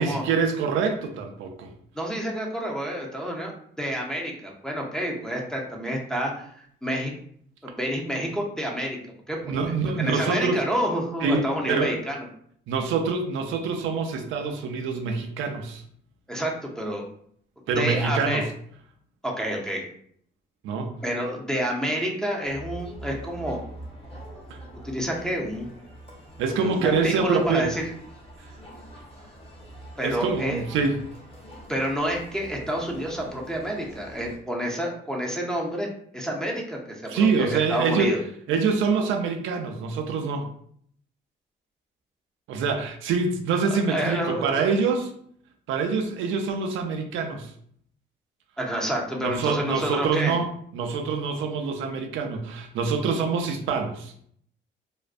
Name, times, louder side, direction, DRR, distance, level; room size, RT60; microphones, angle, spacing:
voice 1, 0.0-1.7 9.4-10.6 11.2-12.0 12.7-15.8 17.7-18.5 20.6-21.0 24.5-24.6 26.4-27.7 28.4-28.5 30.0-31.0 37.1-38.1 38.5-40.5 42.5-45.1 45.7-47.5 49.2-54.1, right 5 dB, 80° right, 4 dB, 0.4 m, -25 dB
voice 2, 2.0-6.5 6.8-7.1 7.6-9.0 9.3-9.5 10.0-12.3 16.3-17.1 17.8-18.4 19.2-19.8 21.0-23.6 24.8-25.7 26.6-27.8 30.0-30.6 31.7-35.9 36.1-38.2 43.6-44.6 48.6-50.4, equal, 5° left, 0 dB, 0.6 m, -29 dB
Crowd, 22.4-34.4, right 1 dB, 30° left, 1.0 m, -44 dB
2.4 x 2.2 x 2.4 m, 0.63 s
cardioid pair, 90°, 20 cm